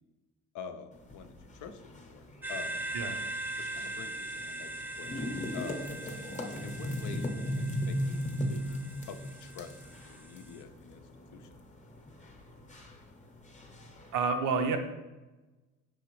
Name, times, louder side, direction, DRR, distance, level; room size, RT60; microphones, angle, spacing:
voice 1, 0.5-2.8 3.6-4.7 5.0-5.2 5.5-6.0 6.6-11.0 11.3-11.5, left 7 dB, 80° left, 8 dB, 0.5 m, -47 dB
sound 1, 0.9-14.1, equal, 25° left, 0.7 m, -39 dB
sound 2, 2.4-10.6, right 2 dB, 5° right, 0.3 m, -41 dB
voice 2, 14.1-14.8, right 5 dB, 85° right, 6 dB, 0.6 m, -29 dB
4.9 x 3.5 x 3.0 m, 1.1 s
cardioid pair, 90°, 30 cm